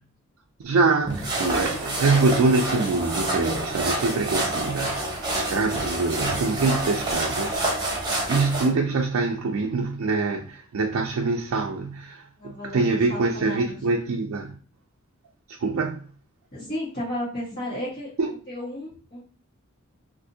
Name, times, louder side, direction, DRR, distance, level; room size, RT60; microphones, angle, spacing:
voice 1, 0.6-14.6 15.5-16.0 18.2-18.3, right 3 dB, 75° right, 0.4 m, -25 dB
sound 1, 1.1-8.7, right 1 dB, 20° right, 1.0 m, -27 dB
voice 2, 12.4-13.8 16.5-18.1 18.5-19.3, left 1 dB, 45° left, 1.5 m, -33 dB
3.4 x 2.6 x 2.7 m
head